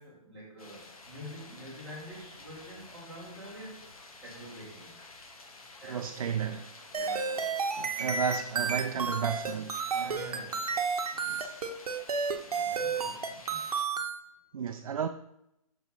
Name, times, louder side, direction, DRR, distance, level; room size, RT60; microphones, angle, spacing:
voice 1, 0.0-3.9 4.2-5.0 5.8-6.5 6.9-8.1 9.9-10.8 12.4-13.7, equal, 5° left, 1.6 m, -47 dB
sound 1, 0.6-13.8, left 3 dB, 70° left, 1.2 m, -51 dB
voice 2, 5.9-6.6 7.8-9.8 11.3-11.5 14.5-15.1, right 8 dB, 65° right, 0.4 m, -32 dB
sound 2, 6.9-14.2, right 5 dB, 80° right, 0.8 m, -31 dB
6.3 x 3.0 x 5.6 m
hypercardioid pair, 180°, 19 cm